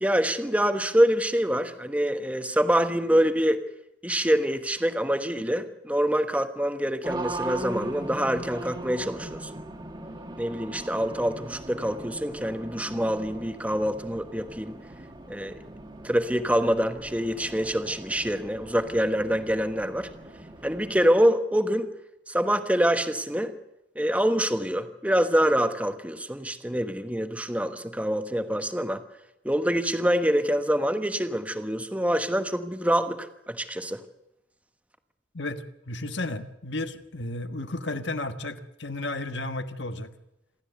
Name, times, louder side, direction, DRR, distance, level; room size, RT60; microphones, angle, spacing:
voice 1, 0.0-3.6 4.0-9.5 10.4-14.8 15.3-15.6 16.0-20.1 20.6-21.9 22.3-23.5 23.9-29.0 29.4-34.0, equal, 5° right, 9 dB, 1.2 m, -25 dB
Race car auto racing, 7.0-21.1, right 2 dB, 25° right, 1.8 m, -39 dB
voice 2, 35.3-40.1, left 2 dB, 65° left, 9 dB, 1.5 m, -33 dB
27.0 x 13.0 x 8.1 m, 0.89 s
head